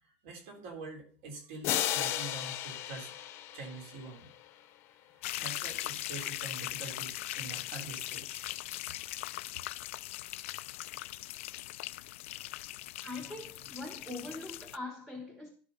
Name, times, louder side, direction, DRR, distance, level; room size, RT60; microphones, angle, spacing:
voice 1, 0.0-3.2 3.5-4.3 5.0-8.4 8.8-9.4, right 3 dB, 60° right, 3.7 m, -46 dB
sound 1, 1.6-4.3, left 12 dB, 35° left, 0.8 m, -34 dB
sound 2, 5.2-14.8, left 17 dB, 90° left, 0.4 m, -40 dB
voice 2, 13.0-15.5, left 2 dB, 5° right, 0.9 m, -42 dB
12.5 x 4.8 x 5.7 m
supercardioid pair, 170°, 7 cm